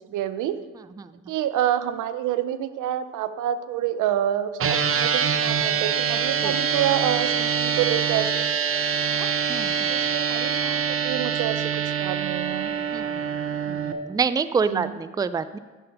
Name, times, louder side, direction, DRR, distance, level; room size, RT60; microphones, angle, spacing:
voice 1, 0.1-0.6 1.3-8.4 9.0-9.3 9.9-12.7 14.6-14.9, right 11 dB, 85° right, 12 dB, 0.7 m, -28 dB
sound 1, 4.6-13.9, right 7 dB, 45° right, 0.8 m, -25 dB
voice 2, 9.5-9.9 12.9-13.2 13.7-15.6, right 5 dB, 15° right, 14 dB, 0.4 m, -27 dB
10.5 x 6.5 x 5.5 m, 1.3 s
cardioid pair, 90°, 30 cm